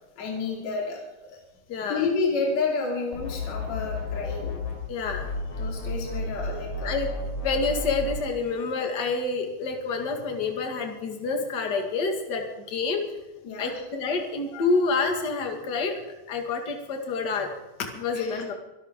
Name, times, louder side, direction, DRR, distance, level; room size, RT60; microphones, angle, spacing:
voice 1, 0.2-1.4 1.9-4.7 5.6-6.9 13.4-13.8 18.1-18.4, left 4 dB, 55° left, -2 dB, 3.8 m, -30 dB
voice 2, 1.7-2.1 4.9-5.3 6.8-7.1 7.4-13.0 13.6-16.0 16.3-17.5 17.9-18.5, left 4 dB, 35° left, 3 dB, 2.1 m, -28 dB
sound 1, 3.1-4.8 5.0-8.2, left 2 dB, 80° left, 6.1 m, -32 dB
24.0 x 13.0 x 3.7 m, 1.0 s
omnidirectional pair, 3.8 m